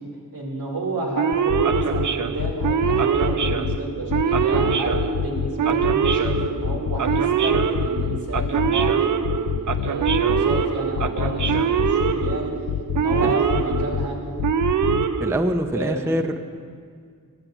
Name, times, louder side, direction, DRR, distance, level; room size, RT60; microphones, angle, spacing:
voice 1, 0.3-12.5 13.0-14.2 15.7-16.1, right 2 dB, 80° right, -1 dB, 2.5 m, -30 dB
Male speech man speaking / Siren, 1.2-15.9, right 7 dB, 60° right, 0.5 m, -23 dB
sound 1, 1.3-2.1 2.4-3.8 4.1-5.5 5.8-7.2 7.5-8.9 9.2-10.6 11.0-12.4 12.7-14.1 14.4-15.1, left 9 dB, 85° left, 0.5 m, -26 dB
voice 2, 15.2-16.4, right 1 dB, 10° right, 9 dB, 0.4 m, -24 dB
11.5 x 7.9 x 7.6 m, 2.1 s
wide cardioid pair, 135°, 34 cm